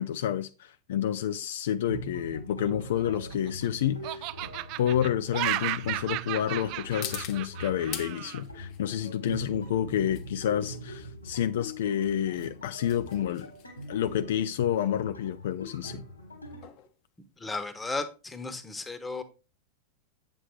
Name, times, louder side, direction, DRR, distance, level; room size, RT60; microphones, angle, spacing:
voice 1, 0.0-4.2 4.8-13.5 13.9-16.0, left 10 dB, 60° left, 0.4 m, -29 dB
sound 1, 1.4-18.1, left 11 dB, 40° left, 0.9 m, -47 dB
sound 2, 1.9-16.6, equal, 85° left, 3.0 m, -42 dB
Laughter, 2.8-3.7 4.0-8.4, right 18 dB, 40° right, 0.3 m, -34 dB
voice 2, 17.4-19.2, left 3 dB, 10° left, 1.1 m, -34 dB
8.3 x 8.1 x 3.2 m
figure-of-eight pair, 90°, 0 cm